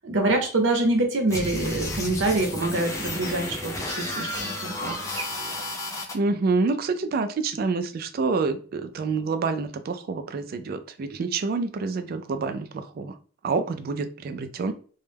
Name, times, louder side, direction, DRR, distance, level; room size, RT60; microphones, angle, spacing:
voice 1, 0.0-5.3, right 2 dB, 75° right, 3 dB, 0.7 m, -25 dB
sound 1, 1.3-6.1, left 1 dB, 15° left, 0.4 m, -32 dB
voice 2, 6.1-13.2 13.4-14.7, right 4 dB, 50° right, 9 dB, 0.3 m, -27 dB
2.1 x 2.1 x 3.2 m, 0.41 s
head